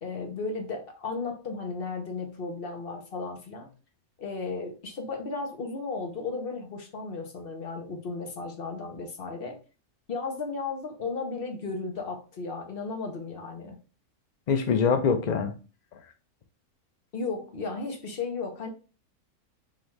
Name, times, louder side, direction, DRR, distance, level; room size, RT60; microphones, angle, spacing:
voice 1, 0.0-3.7 4.2-9.6 10.1-13.8 17.1-18.7, left 4 dB, 45° left, 3 dB, 1.0 m, -34 dB
voice 2, 14.5-15.5, left 6 dB, 85° left, 7 dB, 0.3 m, -24 dB
3.8 x 2.6 x 4.6 m, 0.34 s
omnidirectional pair, 1.6 m